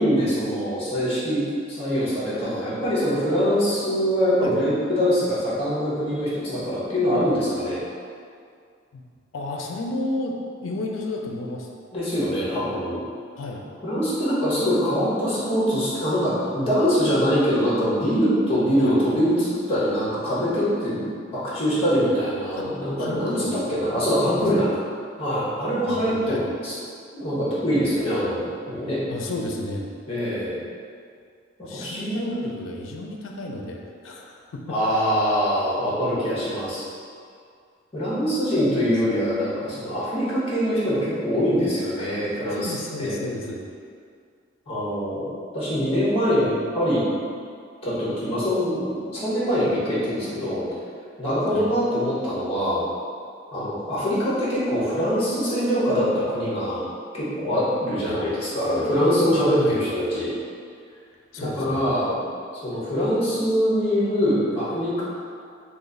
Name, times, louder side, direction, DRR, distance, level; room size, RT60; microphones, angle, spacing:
voice 1, 0.0-1.4 1.7-7.8 11.9-13.0 13.8-21.0 21.3-24.7 25.2-26.7 27.1-29.0 30.1-30.6 31.7-32.3 34.7-36.9 37.9-42.7 43.0-43.2 44.7-45.2 45.5-47.0 47.8-50.6 51.2-52.8 53.5-56.8 57.1-60.3 61.4-62.1 62.6-65.0, equal, 30° left, -9 dB, 1.0 m, -23 dB
voice 2, 9.3-11.7 13.4-13.6 18.8-19.0 22.6-22.7 23.0-23.7 24.4-24.7 25.9-26.5 29.1-29.9 31.6-34.6 38.6-39.1 42.0-43.6 51.5-51.7 58.0-58.2 59.6-59.8 61.3-61.8, left 2 dB, 90° left, 1 dB, 0.4 m, -32 dB
3.1 x 2.4 x 3.8 m, 2.2 s
head